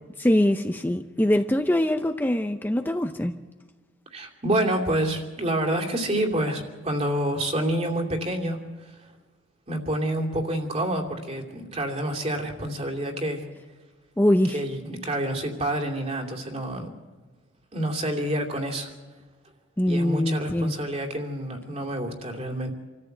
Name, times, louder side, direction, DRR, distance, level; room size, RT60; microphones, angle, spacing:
voice 1, 0.2-3.3 14.2-14.6 19.8-20.7, left 1 dB, 10° left, 0.6 m, -23 dB
voice 2, 4.1-8.6 9.7-13.4 14.5-16.9 17.7-18.9 19.9-22.7, right 1 dB, 35° right, 2.8 m, -28 dB
27.0 x 14.0 x 7.9 m
head